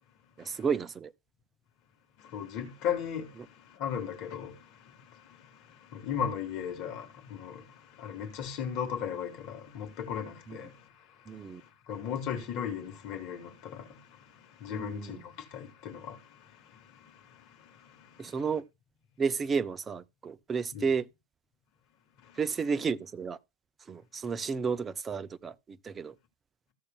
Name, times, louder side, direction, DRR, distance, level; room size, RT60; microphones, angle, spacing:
voice 1, 0.4-1.1 10.5-10.6 11.3-11.6 14.7-15.2 18.2-18.6 19.2-21.1 22.4-23.4 23.9-26.1, right 5 dB, 20° right, 0.4 m, -32 dB
voice 2, 2.2-18.3 20.7-20.9 22.2-22.4, left 8 dB, 40° left, 1.4 m, -38 dB
14.0 x 6.5 x 2.3 m
figure-of-eight pair, 90°, 0 cm